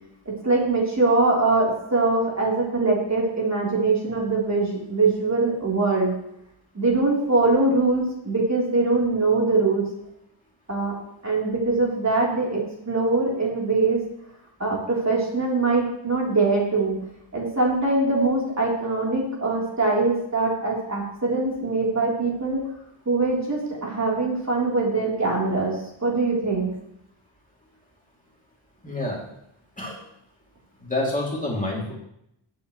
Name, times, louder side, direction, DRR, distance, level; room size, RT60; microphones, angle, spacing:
voice 1, 0.4-6.1 6.7-9.8 10.7-11.0 11.2-14.0 14.6-17.0 17.3-22.6 23.1-26.7, right 3 dB, 35° right, -3 dB, 3.8 m, -22 dB
voice 2, 28.8-29.2 29.8-30.0 30.8-31.9, left 2 dB, 15° left, -4 dB, 3.0 m, -27 dB
22.0 x 8.1 x 3.3 m, 0.77 s
wide cardioid pair, 105°, 48 cm